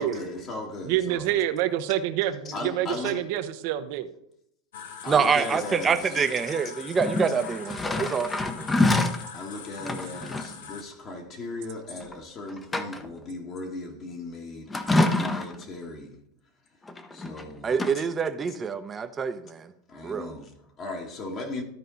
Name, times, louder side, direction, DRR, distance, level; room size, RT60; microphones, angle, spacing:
voice 1, 0.0-1.5 2.4-3.3 5.0-6.3 9.3-16.2 17.1-18.1 19.9-21.6, left 2 dB, 40° left, 1.6 m, -37 dB
voice 2, 0.9-4.1, right 12 dB, 65° right, 0.8 m, -27 dB
sound 1, 4.7-10.8, left 7 dB, 80° left, 1.1 m, -42 dB
voice 3, 5.1-8.4 17.6-19.7 20.0-20.3, right 6 dB, 25° right, 0.7 m, -26 dB
sound 2, 7.0-9.3 9.8-10.5 12.0-12.1 12.5-13.2 14.7-15.7 16.9-17.5 17.7-17.9, left 2 dB, 15° left, 0.8 m, -26 dB
13.0 x 4.5 x 3.9 m
hypercardioid pair, 110°, 0 cm